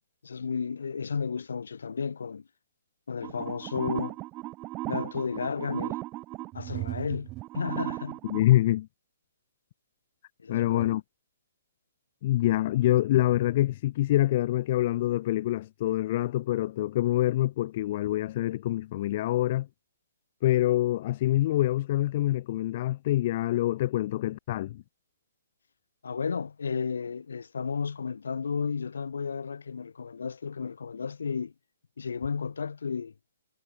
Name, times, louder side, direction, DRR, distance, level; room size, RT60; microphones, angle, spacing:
voice 1, 0.2-2.5 3.1-4.2 4.9-6.0 6.5-8.2 10.4-11.0 26.0-31.5 32.0-33.1, left 5 dB, 80° left, 3.1 m, -33 dB
sound 1, 3.2-8.5, right 18 dB, 20° right, 1.2 m, -36 dB
voice 2, 8.3-8.9 10.5-11.0 12.2-19.7 20.4-24.8, left 15 dB, 40° left, 0.7 m, -25 dB
hypercardioid pair, 160°, 0 cm